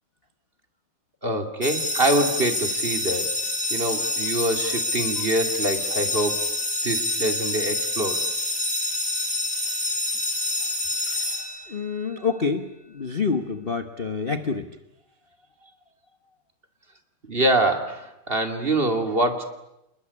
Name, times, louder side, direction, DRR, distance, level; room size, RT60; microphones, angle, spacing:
voice 1, 1.2-3.3 3.7-6.4 6.8-8.2 11.0-11.3 17.3-19.4, right 1 dB, 25° right, 6 dB, 2.7 m, -25 dB
sound 1, 1.6-12.0, left 2 dB, 5° left, 3.9 m, -27 dB
voice 2, 11.7-14.8, left 5 dB, 35° left, 8 dB, 1.1 m, -27 dB
28.5 x 21.0 x 9.9 m, 0.87 s
omnidirectional pair, 2.2 m